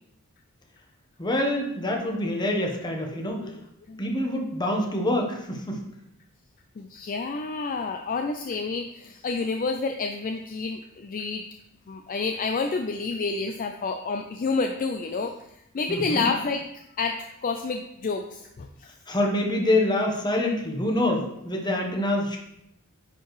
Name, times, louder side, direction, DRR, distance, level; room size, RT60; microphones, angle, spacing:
voice 1, 1.2-3.4 4.0-5.8 15.9-16.3 19.1-22.4, left 1 dB, 20° left, 1 dB, 1.0 m, -26 dB
voice 2, 3.3-3.6 3.9-4.0 6.8-11.4 11.9-15.3 15.7-16.6 17.0-18.9, left 4 dB, 40° left, 6 dB, 0.4 m, -29 dB
9.9 x 4.6 x 3.1 m, 0.79 s
head